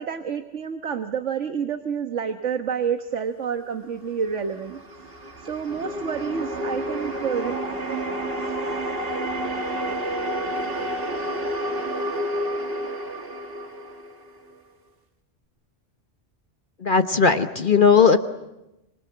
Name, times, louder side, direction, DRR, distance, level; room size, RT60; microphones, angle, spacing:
voice 1, 0.0-4.8 5.4-7.5, right 7 dB, 85° right, 7 dB, 1.6 m, -28 dB
sound 1, 4.2-14.6, right 1 dB, 50° right, 2.3 m, -30 dB
voice 2, 16.8-18.2, left 5 dB, 45° left, 8 dB, 1.2 m, -17 dB
26.0 x 24.0 x 8.7 m, 0.94 s
omnidirectional pair, 1.2 m